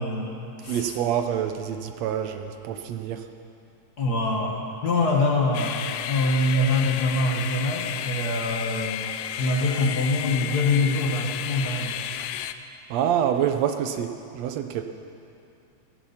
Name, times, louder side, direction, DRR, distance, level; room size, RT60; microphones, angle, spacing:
voice 1, 0.0-1.0 4.0-9.0 9.4-12.0, left 2 dB, 45° left, 0 dB, 1.4 m, -24 dB
voice 2, 0.7-3.3 12.9-14.8, right 9 dB, 75° right, 7 dB, 1.8 m, -26 dB
sound 1, 5.5-12.5, left 10 dB, 80° left, 1.7 m, -32 dB
16.0 x 15.5 x 5.7 m, 2.6 s
omnidirectional pair, 3.3 m